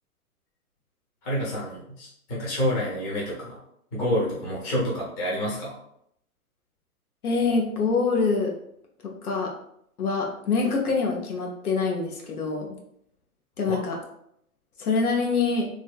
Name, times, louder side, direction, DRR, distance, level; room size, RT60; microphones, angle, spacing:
voice 1, 1.2-3.6 3.9-5.7 13.7-13.8, equal, 15° left, -6 dB, 0.6 m, -28 dB
voice 2, 7.2-8.5 9.2-9.5 10.0-12.8 13.6-14.0 14.8-15.6, left 4 dB, 80° left, 0 dB, 0.8 m, -25 dB
3.1 x 2.0 x 2.2 m, 0.72 s
hypercardioid pair, 130°, 45 cm